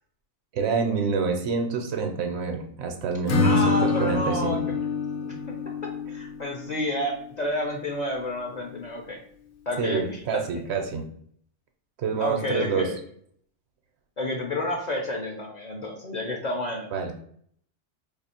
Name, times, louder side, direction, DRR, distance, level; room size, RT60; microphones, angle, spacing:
voice 1, 0.5-4.6 9.8-11.0 12.0-12.9 16.9-17.1, right 5 dB, 70° right, 4 dB, 0.9 m, -27 dB
Acoustic guitar / Strum, 3.3-7.2, left 4 dB, 70° left, 0.9 m, -26 dB
voice 2, 3.4-4.8 5.2-5.4 6.1-9.2 9.7-10.4 12.2-13.0 14.2-16.9, left 1 dB, 50° left, 0 dB, 0.5 m, -30 dB
2.7 x 2.5 x 4.2 m, 0.63 s
omnidirectional pair, 1.2 m